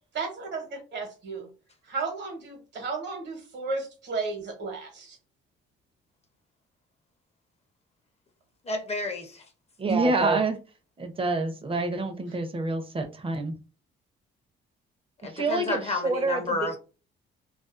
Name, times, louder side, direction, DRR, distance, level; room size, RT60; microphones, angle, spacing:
voice 1, 0.1-1.5 1.9-5.2, right 4 dB, 65° right, 1.0 m, -34 dB
voice 2, 8.6-9.4 15.2-16.8, left 3 dB, 30° left, 0.7 m, -30 dB
voice 3, 9.8-10.6 11.0-13.5 15.2-16.7, right 3 dB, 25° right, 0.6 m, -27 dB
2.4 x 2.3 x 2.4 m
cardioid pair, 90°, 20 cm